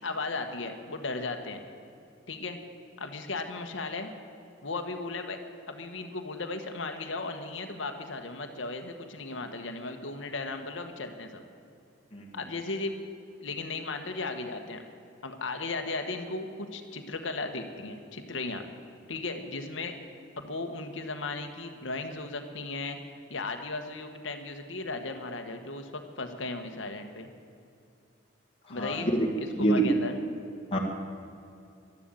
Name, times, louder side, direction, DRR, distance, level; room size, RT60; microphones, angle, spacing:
voice 1, 0.0-1.6 2.3-2.6 3.0-4.1 4.6-5.4 5.7-11.4 12.3-12.9 13.4-14.8 15.2-18.6 19.1-19.9 20.4-23.0 23.3-27.3 28.7-29.1 29.4-30.1, left 3 dB, 70° left, 6 dB, 1.3 m, -36 dB
voice 2, 28.7-29.3 29.5-29.8 30.7-30.8, right 1 dB, 30° left, -1 dB, 1.7 m, -26 dB
12.0 x 11.5 x 8.9 m, 2.6 s
head